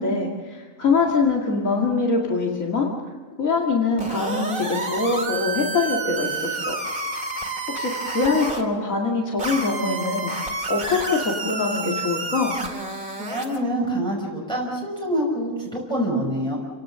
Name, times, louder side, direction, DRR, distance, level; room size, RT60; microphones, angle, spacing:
voice 1, 0.0-2.9 3.4-6.8 7.7-10.3 10.7-12.6, left 4 dB, 80° left, -1 dB, 2.6 m, -23 dB
sound 1, 4.0-8.6 9.4-13.6, right 3 dB, 40° right, 2.4 m, -29 dB
voice 2, 13.2-16.6, equal, 5° left, -3 dB, 5.5 m, -26 dB
29.5 x 18.0 x 6.9 m, 1.4 s
omnidirectional pair, 1.4 m